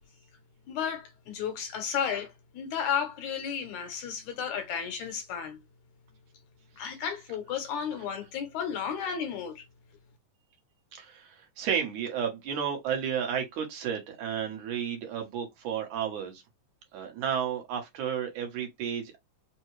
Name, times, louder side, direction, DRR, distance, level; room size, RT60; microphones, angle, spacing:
voice 1, 0.7-5.6 6.8-9.6, left 7 dB, 70° left, 2.0 m, -33 dB
voice 2, 10.9-16.4 16.9-19.2, right 8 dB, 70° right, 2.5 m, -32 dB
5.5 x 2.2 x 3.1 m
omnidirectional pair, 3.7 m